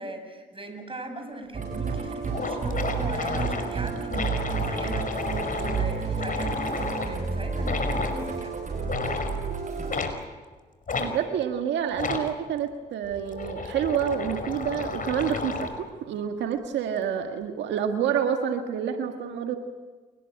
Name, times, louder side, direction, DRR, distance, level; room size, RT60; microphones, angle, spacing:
voice 1, 0.0-8.6, right 1 dB, 30° right, 6 dB, 8.0 m, -39 dB
Musical instrument, 1.5-10.0, right 5 dB, 45° right, 6.9 m, -31 dB
sound 1, 1.7-1.8 2.0-2.1 2.3-7.2 7.6-8.2 8.8-9.4 9.9-10.2 10.9-11.1 11.9-12.3 13.0-15.8, left 4 dB, 50° left, 5.2 m, -31 dB
voice 2, 11.0-19.6, right 8 dB, 90° right, 5 dB, 1.7 m, -28 dB
29.0 x 20.0 x 8.7 m, 1.4 s
supercardioid pair, 55°, 18 cm